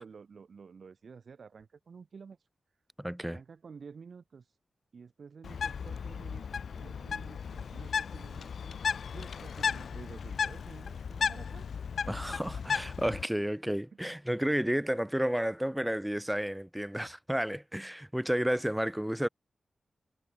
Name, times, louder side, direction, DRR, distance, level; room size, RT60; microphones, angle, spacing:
voice 1, 0.0-2.4 3.2-4.5 4.9-8.8 9.1-11.7 12.3-12.5, right 5 dB, 70° right, 2.4 m, -51 dB
voice 2, 3.0-3.4 12.1-19.3, equal, 5° right, 0.4 m, -31 dB
Bird, 5.4-13.2, left 6 dB, 80° left, 0.5 m, -35 dB
cardioid pair, 65°, 0 cm